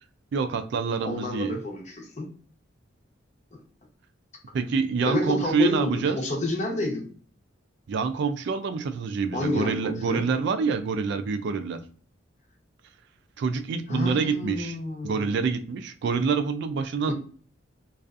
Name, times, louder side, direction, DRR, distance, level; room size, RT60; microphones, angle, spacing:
voice 1, 0.3-1.6 4.5-6.2 7.9-11.8 13.4-14.8 15.0-17.1, right 5 dB, 60° right, 8 dB, 0.3 m, -26 dB
voice 2, 1.0-2.3 3.5-3.6 5.0-7.1 9.3-10.2 13.9-15.3 17.1-17.2, left 2 dB, 35° left, 1 dB, 0.7 m, -29 dB
2.5 x 2.3 x 2.3 m, 0.43 s
head